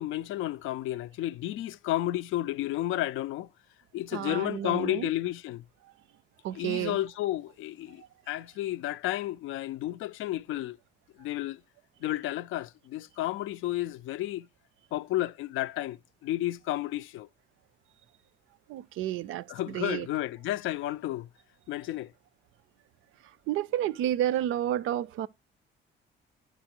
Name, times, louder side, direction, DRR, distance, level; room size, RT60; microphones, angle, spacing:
voice 1, 0.0-3.5 3.9-5.6 6.5-10.8 11.2-11.6 12.0-14.5 14.9-17.3 19.5-21.3 21.7-22.1, left 14 dB, 85° left, 0.4 m, -32 dB
voice 2, 4.1-5.1 6.4-7.0 8.0-8.1 18.7-20.1 23.5-25.3, right 12 dB, 85° right, 0.4 m, -31 dB
10.0 x 4.0 x 4.4 m
cardioid pair, 90°, 20 cm